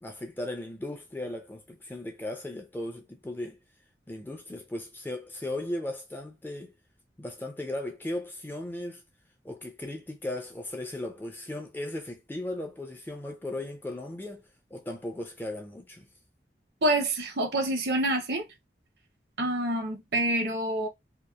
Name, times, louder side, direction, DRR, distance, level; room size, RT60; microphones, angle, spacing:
voice 1, 0.0-3.6 4.1-6.7 7.2-9.0 9.4-16.1, left 1 dB, 10° left, 0.4 m, -37 dB
voice 2, 16.8-18.5 19.4-20.9, right 1 dB, 70° right, 0.6 m, -27 dB
2.8 x 2.0 x 2.2 m
head